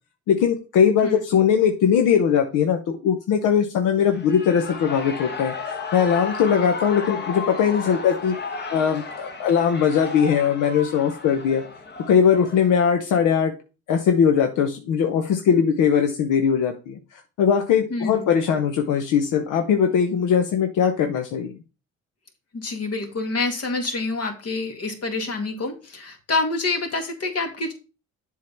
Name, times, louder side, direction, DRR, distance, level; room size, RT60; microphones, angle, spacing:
voice 1, 0.3-8.4 8.7-11.6 12.1-13.5 13.9-17.0 17.4-21.5, left 7 dB, 85° left, 5 dB, 0.9 m, -20 dB
Shout / Cheering, 4.0-12.9, left 4 dB, 35° left, 1.2 m, -34 dB
voice 2, 17.9-18.3 22.5-27.7, left 3 dB, 55° left, 4 dB, 2.1 m, -27 dB
7.6 x 3.8 x 5.7 m, 0.32 s
cardioid pair, 90°, 30 cm